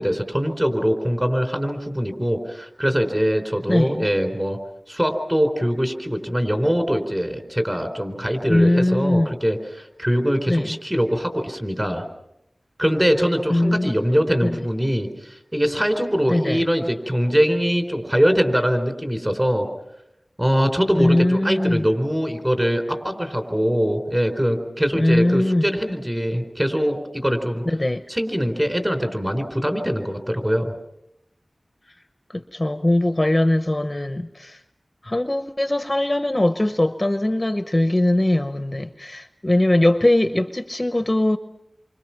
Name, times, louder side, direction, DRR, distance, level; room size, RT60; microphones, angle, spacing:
voice 1, 0.0-4.6 4.9-12.0 12.8-19.7 20.4-27.6 28.1-30.7, equal, 15° right, 6 dB, 4.2 m, -22 dB
voice 2, 3.7-4.1 8.5-9.3 10.5-10.7 13.5-13.9 14.4-14.5 16.3-16.6 21.0-21.9 24.9-25.7 27.7-28.0 32.3-34.6 35.0-41.4, left 1 dB, 25° left, 9 dB, 0.8 m, -20 dB
29.5 x 25.0 x 5.9 m, 0.84 s
wide cardioid pair, 65°, 0 cm